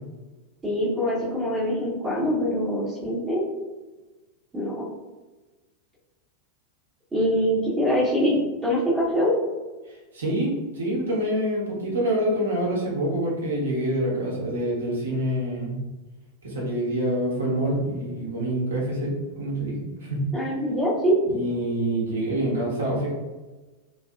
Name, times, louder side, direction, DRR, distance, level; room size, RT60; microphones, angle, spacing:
voice 1, 0.6-3.4 4.5-4.8 7.1-9.3 20.3-21.1, equal, 15° right, -8 dB, 0.7 m, -24 dB
voice 2, 10.1-15.8 16.4-20.3 21.3-23.1, right 1 dB, 70° right, -4 dB, 0.9 m, -26 dB
2.7 x 2.3 x 2.3 m, 1.2 s
figure-of-eight pair, 90°, 0 cm